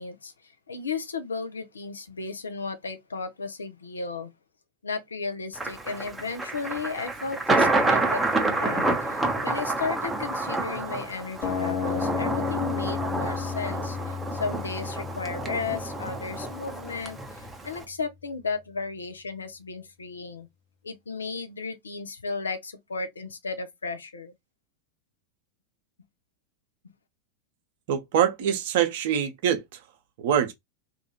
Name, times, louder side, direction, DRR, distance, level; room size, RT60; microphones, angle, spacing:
voice 1, 0.0-4.3 4.8-20.5 20.8-24.3, left 4 dB, 75° left, 0.5 m, -34 dB
Thunder, 5.6-17.8, right 2 dB, 10° right, 0.7 m, -28 dB
sound 1, 11.4-17.4, left 7 dB, 45° left, 1.1 m, -33 dB
voice 2, 27.9-29.6 30.2-30.5, right 9 dB, 50° right, 0.7 m, -24 dB
2.6 x 2.4 x 2.8 m
figure-of-eight pair, 90°, 0 cm